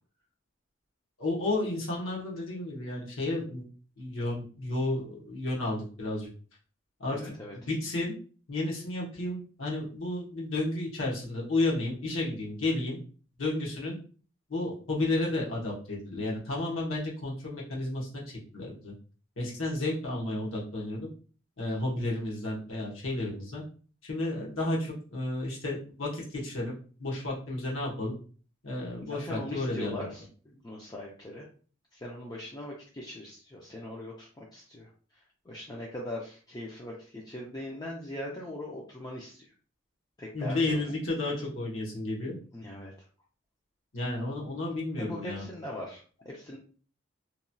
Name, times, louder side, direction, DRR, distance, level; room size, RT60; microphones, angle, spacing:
voice 1, 1.2-3.6 4.0-6.3 7.0-7.2 7.7-8.2 8.5-13.0 13.4-14.0 14.5-18.1 18.5-18.9 19.4-21.1 21.6-23.6 24.0-26.7 27.0-28.1 28.6-30.0 40.3-42.4 43.9-45.4, left 2 dB, 85° left, -3 dB, 1.0 m, -32 dB
voice 2, 7.1-7.6 29.0-31.5 31.9-39.5 40.2-40.8 42.5-42.9 45.0-46.6, left 1 dB, 20° left, -3 dB, 0.4 m, -41 dB
2.9 x 2.6 x 2.2 m, 0.40 s
head